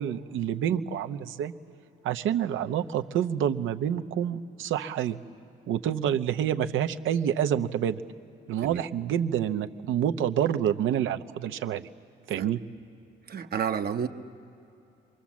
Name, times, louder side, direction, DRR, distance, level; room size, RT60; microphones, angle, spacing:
voice 1, 0.0-1.5 2.0-5.2 5.7-8.0 8.5-11.9 12.3-12.6, right 9 dB, 80° right, 8 dB, 0.8 m, -28 dB
voice 2, 13.3-14.1, right 7 dB, 50° right, 7 dB, 1.0 m, -30 dB
26.5 x 23.5 x 7.4 m, 2.7 s
cardioid pair, 90°, 20 cm